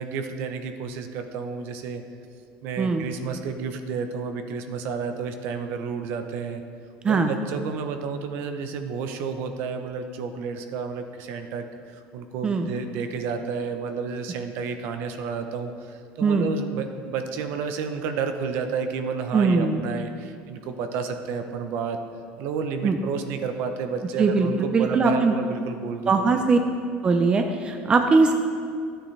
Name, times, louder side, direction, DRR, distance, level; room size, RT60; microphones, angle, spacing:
voice 1, 0.0-2.0 2.6-6.6 7.1-22.0 22.4-26.5, right 5 dB, 60° right, 7 dB, 0.8 m, -31 dB
voice 2, 2.8-3.1 7.0-7.3 12.4-12.7 16.2-16.5 19.3-19.8 22.8-23.0 24.2-25.3 26.1-26.6 27.0-28.3, right 4 dB, 25° right, 5 dB, 0.5 m, -21 dB
11.5 x 8.9 x 3.3 m, 2.2 s
cardioid pair, 130°, 4 cm